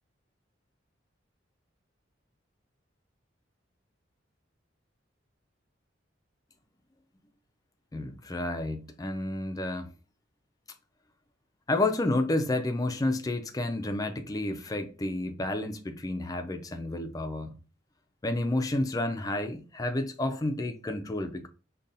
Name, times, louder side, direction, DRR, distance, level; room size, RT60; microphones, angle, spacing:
voice 1, 7.9-9.9 11.7-17.6 18.2-21.5, left 2 dB, 20° left, 0.4 m, -30 dB
5.3 x 2.2 x 2.6 m
head